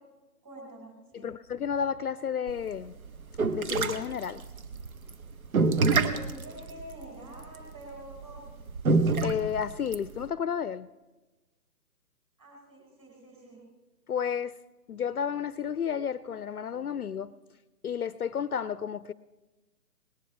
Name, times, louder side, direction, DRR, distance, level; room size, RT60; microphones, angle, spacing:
voice 1, 0.4-1.3 5.9-8.5 12.4-13.6, right 1 dB, 10° right, -2 dB, 4.9 m, -47 dB
voice 2, 1.1-3.0 3.5-4.4 9.2-10.9 14.1-14.5 14.9-17.3 17.8-19.1, left 7 dB, 65° left, 17 dB, 0.6 m, -31 dB
sound 1, 2.5-10.2, right 3 dB, 60° right, 1.3 m, -27 dB
19.5 x 18.5 x 3.3 m, 1.1 s
figure-of-eight pair, 145°, 49 cm